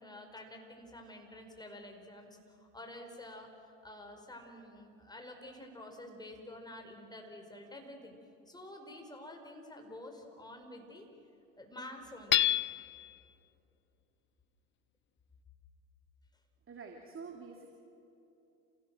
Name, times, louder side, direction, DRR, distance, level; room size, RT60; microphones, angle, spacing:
voice 1, 0.0-3.5 3.8-8.2 8.5-11.1 11.6-12.4, left 1 dB, 10° left, 2 dB, 5.1 m, -49 dB
Hammer / Chink clink, 12.3-13.1, left 12 dB, 30° left, 0.5 m, -28 dB
voice 2, 16.7-17.7, right 5 dB, 30° right, 2 dB, 2.8 m, -47 dB
29.0 x 17.0 x 7.6 m, 2.9 s
hypercardioid pair, 75°, 41 cm